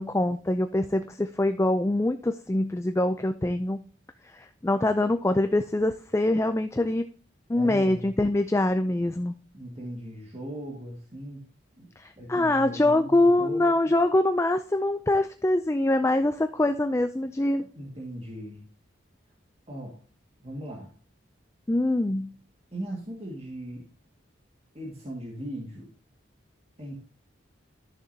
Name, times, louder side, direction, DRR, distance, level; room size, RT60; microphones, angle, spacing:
voice 1, 0.0-3.8 4.2-7.1 7.5-9.3 12.0-17.7 21.7-22.3, left 1 dB, 15° left, 9 dB, 0.4 m, -24 dB
voice 2, 7.5-8.1 9.5-11.4 11.8-13.7 17.8-18.7 19.7-20.0 20.4-20.9 22.7-23.9 24.7-25.9 26.8-27.0, right 1 dB, 30° right, -3 dB, 2.0 m, -38 dB
13.0 x 6.8 x 2.8 m, 0.40 s
head